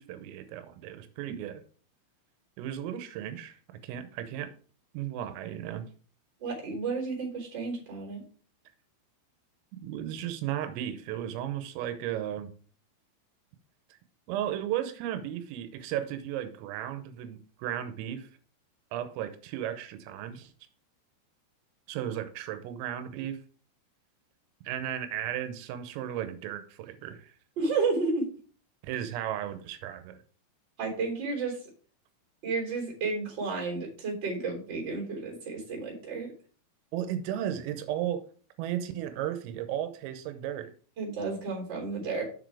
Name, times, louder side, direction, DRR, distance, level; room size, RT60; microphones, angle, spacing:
voice 1, 0.0-1.6 2.6-3.6 3.8-4.5 5.0-5.9 9.7-12.5 14.3-18.3 18.9-20.5 21.9-23.4 24.7-27.3 28.8-30.2 36.9-38.2 38.6-40.7, right 11 dB, 85° right, 10 dB, 3.5 m, -35 dB
voice 2, 6.4-8.2 27.6-28.2 30.8-31.6 32.4-36.3 41.0-42.2, right 4 dB, 25° right, -1 dB, 3.4 m, -32 dB
7.1 x 6.1 x 4.7 m, 0.41 s
omnidirectional pair, 5.8 m